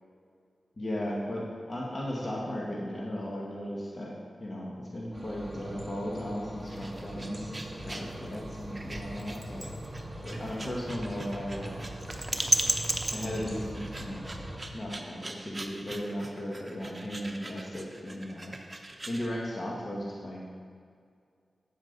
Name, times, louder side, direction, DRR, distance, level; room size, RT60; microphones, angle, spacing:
voice 1, 0.8-9.7 10.2-11.9 13.1-14.2 14.7-18.5 19.0-20.4, equal, 45° left, -3 dB, 1.6 m, -36 dB
sound 1, 5.1-14.6, right 1 dB, 5° left, 2.3 m, -41 dB
sound 2, 6.6-19.3, right 2 dB, 30° right, 0.9 m, -36 dB
8.7 x 7.4 x 4.0 m, 2.2 s
cardioid pair, 40°, 0 cm